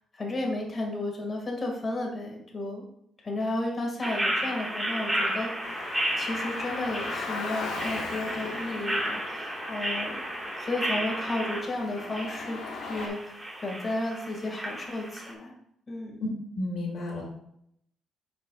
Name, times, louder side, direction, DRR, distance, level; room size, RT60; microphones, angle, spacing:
voice 1, 0.1-2.8 3.2-5.5 6.2-10.2 10.6-15.5 15.9-16.2, left 2 dB, 35° left, 1 dB, 2.1 m, -33 dB
sound 1, 4.0-15.3, right 1 dB, 10° right, 1.8 m, -33 dB
Car, 5.6-13.1, left 4 dB, 85° left, 1.1 m, -39 dB
voice 2, 16.5-17.2, left 2 dB, 65° left, -2 dB, 2.6 m, -32 dB
8.7 x 5.1 x 2.4 m, 0.72 s
cardioid pair, 90°, 0 cm